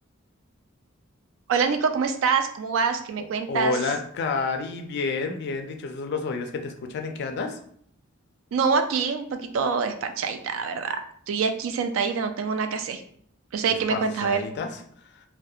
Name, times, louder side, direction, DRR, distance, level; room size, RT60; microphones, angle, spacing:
voice 1, 1.5-3.8 8.5-11.0 11.3-13.0 13.5-14.4, right 5 dB, 70° right, 7 dB, 0.3 m, -25 dB
voice 2, 3.5-7.6 13.9-14.8, left 4 dB, 55° left, 5 dB, 0.3 m, -29 dB
2.7 x 2.1 x 2.3 m, 0.62 s
head